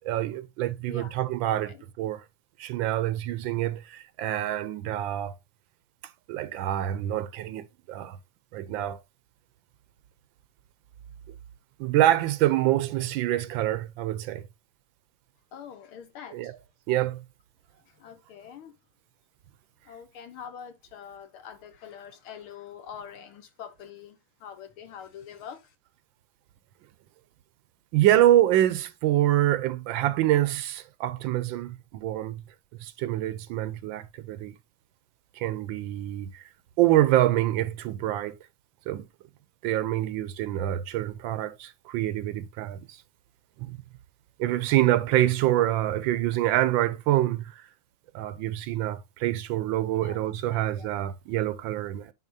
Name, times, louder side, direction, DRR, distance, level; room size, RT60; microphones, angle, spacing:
voice 1, 0.0-2.2 2.6-5.3 6.3-8.2 8.5-9.0 11.8-14.4 16.3-16.5 16.9-17.2 27.9-32.4 32.8-34.5 35.4-36.4 36.8-38.4 38.9-39.1 39.6-43.0 43.6-43.8 44.4-47.5 48.1-52.1, right 13 dB, 75° right, 1.2 m, -26 dB
voice 2, 15.5-16.5 17.9-18.7 19.9-25.7 49.8-50.2 50.5-50.9, left 8 dB, 85° left, 2.0 m, -44 dB
9.7 x 4.7 x 2.6 m
omnidirectional pair, 2.3 m